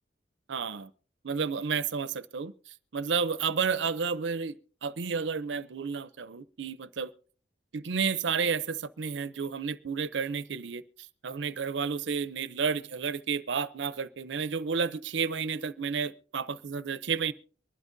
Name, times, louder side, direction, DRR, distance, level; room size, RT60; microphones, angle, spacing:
voice 1, 0.5-0.9 1.2-2.5 2.9-4.6 4.8-7.1 7.7-10.8 11.2-17.3, right 5 dB, 75° right, 0.6 m, -31 dB
23.5 x 12.0 x 2.6 m
head